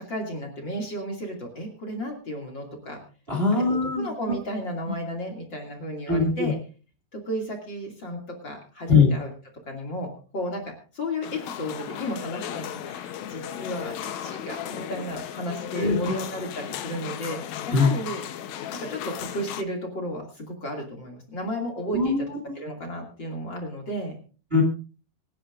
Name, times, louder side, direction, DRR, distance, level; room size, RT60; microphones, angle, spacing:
voice 1, 0.0-3.0 3.5-3.6 4.0-6.5 7.1-9.3 9.7-13.9 14.2-17.4 17.7-18.2 18.7-22.1 22.5-24.2, equal, 35° left, 1 dB, 2.9 m, -33 dB
voice 2, 3.3-4.1 6.1-6.5 8.9-9.1 15.8-16.1 17.7-17.9 21.9-22.4 24.5-24.6, left 4 dB, 20° right, 1 dB, 2.1 m, -21 dB
sound 1, 11.2-19.6, left 10 dB, 70° left, 1.9 m, -36 dB
25.5 x 9.9 x 2.5 m, 0.36 s
omnidirectional pair, 3.9 m